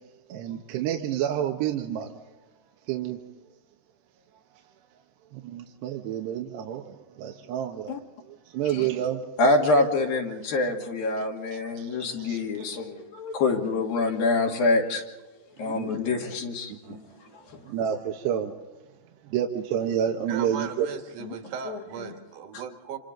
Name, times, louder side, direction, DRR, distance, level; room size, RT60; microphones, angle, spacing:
voice 1, 0.3-2.1 2.9-3.2 5.3-8.0 8.3-9.2 11.2-12.7 15.6-16.1 16.7-17.0 17.3-17.4 17.7-18.5 19.2-20.9, right 9 dB, 85° right, 2 dB, 3.4 m, -30 dB
voice 2, 9.4-15.0 15.6-17.0 17.5-17.6 21.2-21.3 21.7-21.8, left 2 dB, 60° left, 1 dB, 4.0 m, -26 dB
voice 3, 20.3-23.0, right 7 dB, 55° right, 5 dB, 3.0 m, -37 dB
30.0 x 27.0 x 3.9 m, 1.1 s
omnidirectional pair, 4.8 m